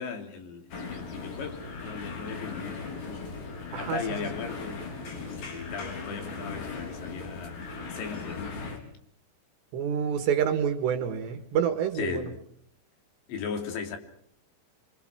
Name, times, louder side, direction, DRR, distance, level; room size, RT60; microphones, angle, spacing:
voice 1, 0.0-3.3 3.8-7.6 7.9-8.7 12.0-12.4 13.3-14.0, left 6 dB, 75° left, 5.2 m, -37 dB
sound 1, 0.7-8.8, left 4 dB, 55° left, 5.2 m, -38 dB
voice 2, 9.7-12.3, right 8 dB, 75° right, 3.5 m, -27 dB
26.0 x 25.0 x 6.0 m
omnidirectional pair, 5.3 m